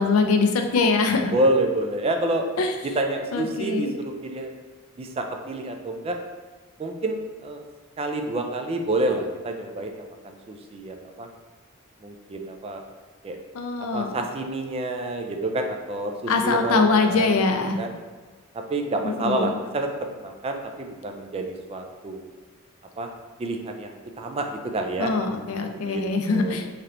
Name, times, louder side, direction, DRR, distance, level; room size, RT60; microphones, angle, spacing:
voice 1, 0.0-1.3 2.6-2.7 3.3-3.9 13.5-14.2 16.3-17.8 19.0-19.4 25.0-26.7, left 4 dB, 80° left, 5 dB, 0.4 m, -23 dB
voice 2, 1.3-2.4 2.9-4.5 5.0-6.2 6.8-7.6 8.0-11.3 12.0-12.8 13.2-13.4 13.9-17.4 17.8-17.9 18.5-19.9 20.2-22.2 23.0-23.1 23.4-25.1 25.8-26.5, right 2 dB, 25° right, 4 dB, 0.3 m, -28 dB
3.3 x 2.8 x 3.8 m, 1.4 s
head